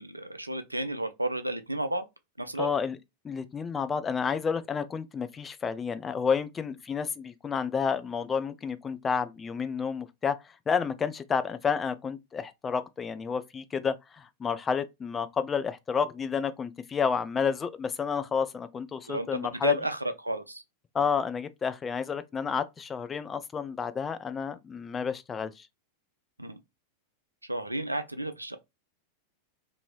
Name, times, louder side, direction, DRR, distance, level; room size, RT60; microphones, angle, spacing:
voice 1, 0.0-2.0 2.4-2.7 19.1-20.6 26.4-26.6 27.5-28.6, right 1 dB, 85° right, 0.4 m, -32 dB
voice 2, 2.6-3.0 3.2-10.4 10.7-19.7 20.9-25.7, left 6 dB, 20° left, 0.3 m, -30 dB
2.9 x 2.6 x 2.3 m
figure-of-eight pair, 90°, 0 cm